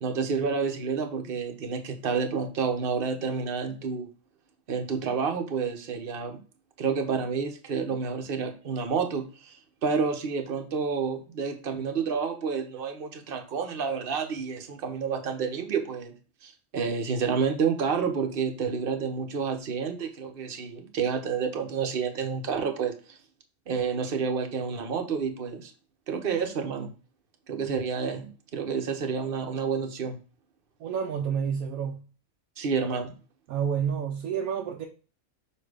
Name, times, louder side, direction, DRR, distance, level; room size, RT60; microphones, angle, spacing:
voice 1, 0.0-4.1 4.7-6.4 6.8-9.6 9.8-16.1 16.4-23.2 23.7-25.7 26.1-26.9 27.5-30.2 32.6-33.1, right 5 dB, 45° right, 1.0 m, -29 dB
voice 2, 30.8-32.0 33.5-34.9, right 7 dB, 75° right, 1.1 m, -29 dB
6.9 x 2.8 x 4.9 m
omnidirectional pair, 1.5 m